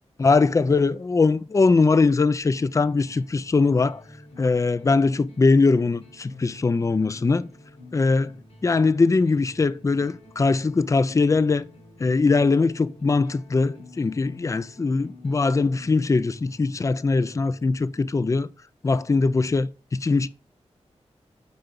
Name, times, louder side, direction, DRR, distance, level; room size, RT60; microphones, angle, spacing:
voice 1, 0.2-4.0 4.4-7.5 7.9-8.3 8.6-11.6 12.0-18.5 18.8-20.3, left 3 dB, 30° left, 0.4 m, -21 dB
sound 1, 2.4-18.3, left 2 dB, 80° left, 4.9 m, -48 dB
9.4 x 4.4 x 5.2 m
wide cardioid pair, 125°, 12 cm